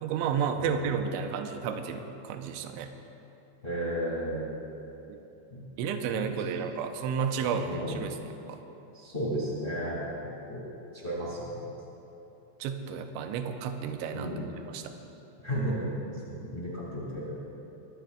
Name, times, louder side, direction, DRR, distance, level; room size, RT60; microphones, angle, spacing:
voice 1, 0.0-2.9 5.1-5.2 5.8-8.2 8.5-8.6 12.6-14.3 14.7-15.0, right 6 dB, 85° right, 6 dB, 2.9 m, -32 dB
voice 2, 3.6-4.5 5.5-5.7 6.1-6.6 7.6-8.1 8.9-10.0 10.5-10.7 10.9-11.6 14.1-14.5 15.4-15.9 16.3-17.3, equal, 55° left, -7 dB, 0.6 m, -34 dB
22.5 x 14.5 x 2.3 m, 3.0 s
omnidirectional pair, 5.6 m